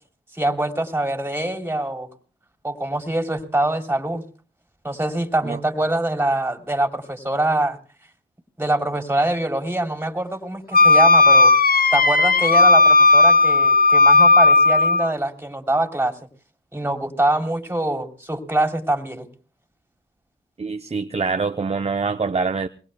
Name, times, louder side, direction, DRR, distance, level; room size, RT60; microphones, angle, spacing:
voice 1, 0.3-2.1 2.6-4.2 4.8-7.8 8.6-11.5 11.9-16.2 16.7-19.3, right 1 dB, 10° right, 4 dB, 3.4 m, -24 dB
Wind instrument woodwind instrument, 10.7-15.1, left 3 dB, 50° left, 0.9 m, -14 dB
voice 2, 20.6-22.7, right 4 dB, 35° right, 9 dB, 0.7 m, -24 dB
26.5 x 22.0 x 2.3 m, 0.40 s
cardioid pair, 40°, 19 cm